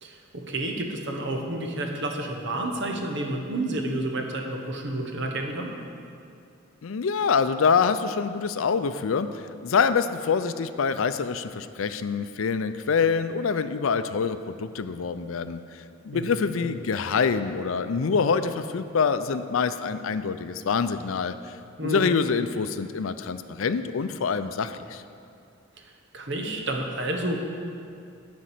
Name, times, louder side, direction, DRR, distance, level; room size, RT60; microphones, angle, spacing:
voice 1, 0.0-5.7 16.1-16.7 21.8-22.1 25.8-27.4, right 1 dB, 60° right, 2 dB, 1.3 m, -30 dB
voice 2, 6.8-21.5 21.8-25.0, left 5 dB, 75° left, 11 dB, 0.5 m, -26 dB
12.0 x 5.2 x 7.6 m, 2.4 s
head